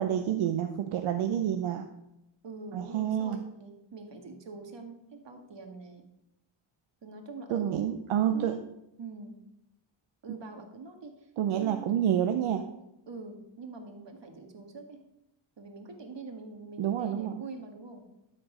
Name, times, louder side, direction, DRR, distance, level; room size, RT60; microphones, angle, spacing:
voice 1, 0.0-1.9 2.7-3.4 7.5-8.5 11.4-12.6 16.8-17.3, right 10 dB, 90° right, 6 dB, 0.7 m, -28 dB
voice 2, 2.4-6.0 7.0-7.8 8.3-8.6 9.0-9.4 10.2-11.3 11.6-11.9 13.1-15.0 15.6-18.1, right 3 dB, 60° right, 4 dB, 1.8 m, -44 dB
12.5 x 4.5 x 5.0 m, 0.87 s
cardioid pair, 50°, 48 cm